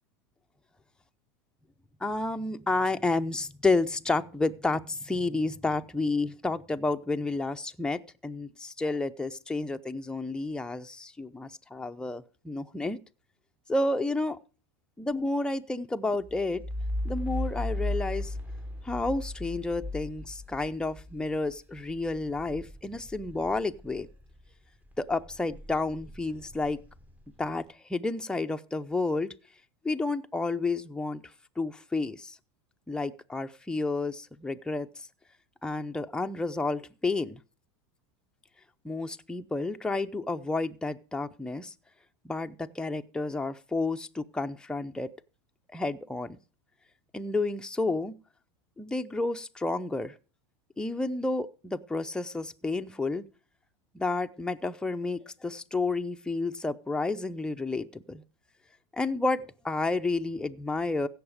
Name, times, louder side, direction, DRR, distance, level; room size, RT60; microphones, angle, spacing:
voice 1, 2.0-13.0 13.7-14.4 15.0-16.6 17.0-18.3 18.8-24.1 25.0-26.8 27.4-29.3 29.8-31.2 31.6-32.4 32.9-34.9 35.6-37.4 38.8-41.7 42.2-45.1 45.7-46.4 47.1-48.2 48.8-50.1 50.8-53.2 53.9-58.2 58.9-61.1, left 3 dB, 5° left, 0.7 m, -30 dB
sound 1, 16.2-24.5 24.9-27.5, left 1 dB, 10° right, 1.1 m, -37 dB
15.5 x 6.6 x 5.1 m
hypercardioid pair, 110°, 15 cm